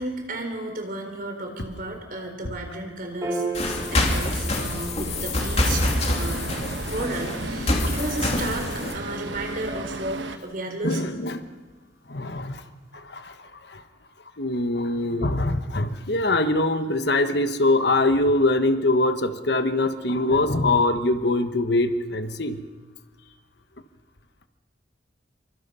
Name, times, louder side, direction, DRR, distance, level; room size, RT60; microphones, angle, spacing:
voice 1, 0.0-5.8 6.1-6.4 6.9-8.7 8.9-11.2, right 2 dB, 50° right, 4 dB, 4.0 m, -33 dB
Piano, 3.2-9.8, right 3 dB, 20° right, 5.3 m, -38 dB
sound 1, 3.5-8.9, left 1 dB, 35° left, 2.9 m, -26 dB
Traffic noise roadway noise, 5.4-10.4, right 2 dB, 75° right, 1.2 m, -34 dB
voice 2, 10.8-11.4 12.1-12.6 12.9-13.3 13.7-13.8 14.4-22.6, left 2 dB, 65° left, 9 dB, 1.2 m, -23 dB
26.5 x 24.5 x 5.6 m, 1.3 s
head